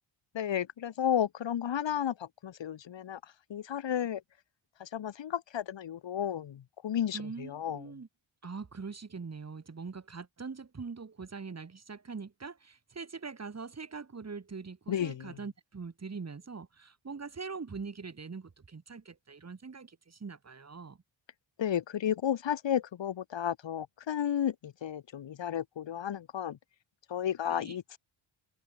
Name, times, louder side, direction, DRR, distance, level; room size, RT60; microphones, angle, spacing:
voice 1, 0.3-3.2 3.5-4.2 4.8-7.8 14.9-15.3 21.6-26.6 27.1-28.0, left 9 dB, 65° left, 1.6 m, -33 dB
voice 2, 7.1-8.1 8.4-21.0 27.5-27.8, right 5 dB, 30° right, 2.8 m, -43 dB
wide cardioid pair, 115°, 48 cm